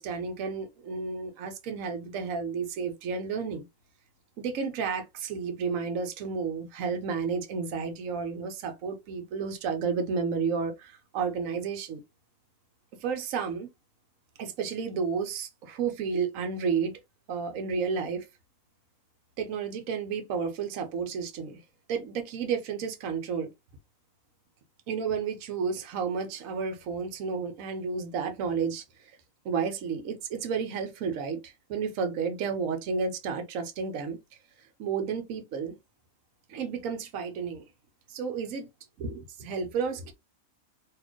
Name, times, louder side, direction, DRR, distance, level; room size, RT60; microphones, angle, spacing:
voice 1, 0.0-3.7 4.4-12.0 13.0-13.7 14.4-16.9 17.3-18.3 19.4-21.6 21.9-23.5 24.9-29.1 29.4-34.2 34.8-35.7 36.5-37.6 38.1-38.7 39.0-40.1, right 5 dB, 70° right, 1.2 m, -31 dB
4.1 x 2.9 x 3.0 m
omnidirectional pair, 1.5 m